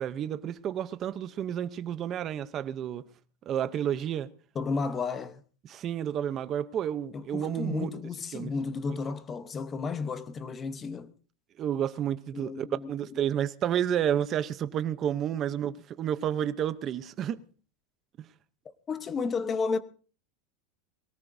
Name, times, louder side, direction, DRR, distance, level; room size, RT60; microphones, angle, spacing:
voice 1, 0.0-3.0 3.5-4.3 5.7-7.9 8.3-8.5 11.6-17.4 18.2-18.3, right 10 dB, 20° right, 0.7 m, -30 dB
voice 2, 4.5-5.4 7.1-11.1 12.3-13.2 18.9-19.8, left 4 dB, 15° left, 0.8 m, -33 dB
22.0 x 18.5 x 2.6 m
supercardioid pair, 180°, 0 cm